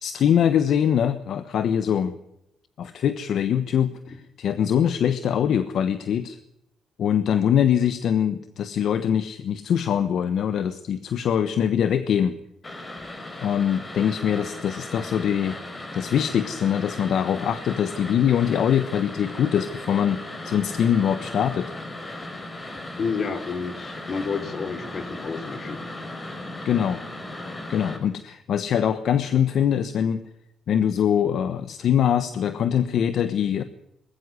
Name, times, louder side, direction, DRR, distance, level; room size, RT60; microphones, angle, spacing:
voice 1, 0.0-2.1 2.8-6.4 7.0-12.4 13.4-15.6 15.9-21.7 26.6-27.0 27.7-30.2 30.7-33.6, left 9 dB, 70° left, 11 dB, 1.2 m, -23 dB
sound 1, 12.6-28.0, left 1 dB, 25° left, 5.5 m, -37 dB
voice 2, 23.0-25.8, left 5 dB, 50° left, 8 dB, 3.1 m, -30 dB
20.0 x 14.5 x 9.6 m, 0.82 s
cardioid pair, 90°, 0 cm